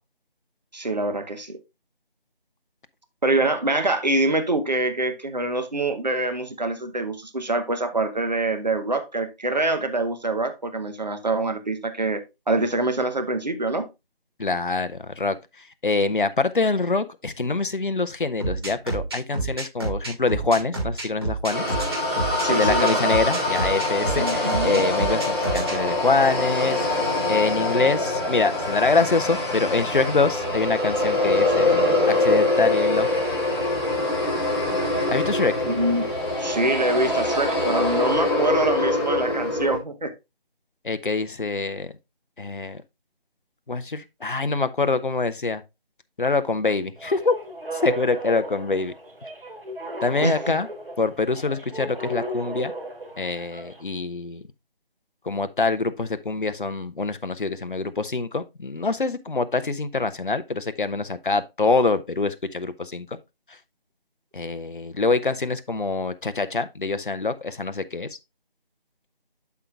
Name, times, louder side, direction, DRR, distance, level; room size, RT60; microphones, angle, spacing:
voice 1, 0.7-1.6 3.2-13.9 22.4-23.1 24.2-24.8 35.6-36.1 36.4-40.1 50.2-50.5, right 2 dB, 45° right, 1.1 m, -25 dB
voice 2, 14.4-15.4 15.8-21.6 22.5-26.8 27.3-33.1 35.1-35.5 40.8-41.9 42.4-42.8 43.7-45.6 46.2-47.3 47.7-48.9 50.0-50.7 51.0-52.7 53.2-54.4 55.2-63.2 64.3-68.1, left 3 dB, 55° left, 0.7 m, -25 dB
sound 1, 18.4-25.7, right 3 dB, 25° right, 2.9 m, -28 dB
sound 2, 21.5-39.8, left 2 dB, 25° left, 2.2 m, -24 dB
sound 3, 47.0-53.8, right 1 dB, 65° right, 3.0 m, -35 dB
12.0 x 4.6 x 2.4 m
figure-of-eight pair, 170°, 30 cm